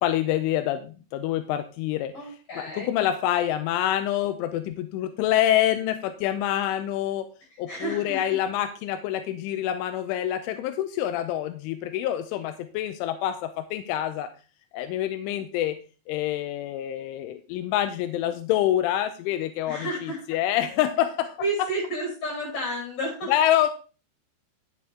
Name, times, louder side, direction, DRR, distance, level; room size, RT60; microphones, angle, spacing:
voice 1, 0.0-2.1 2.6-7.3 7.6-14.3 14.7-15.8 16.1-21.4 23.3-23.7, left 12 dB, 90° left, 9 dB, 3.2 m, -26 dB
voice 2, 2.1-2.9 7.7-8.3 19.7-20.4 21.4-23.3, right 1 dB, 35° left, -2 dB, 7.4 m, -31 dB
10.5 x 8.5 x 3.5 m, 0.35 s
omnidirectional pair, 5.5 m